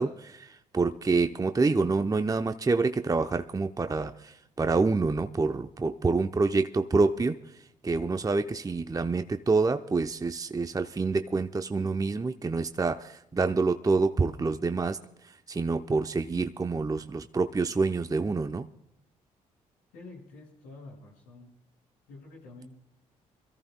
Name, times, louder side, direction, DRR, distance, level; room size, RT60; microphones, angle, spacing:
voice 1, 0.0-18.7, right 3 dB, 20° right, 8 dB, 0.7 m, -27 dB
voice 2, 19.9-21.5 22.1-22.8, left 2 dB, 80° left, -2 dB, 5.9 m, -48 dB
26.5 x 14.0 x 2.2 m, 0.83 s
hypercardioid pair, 45°, 17 cm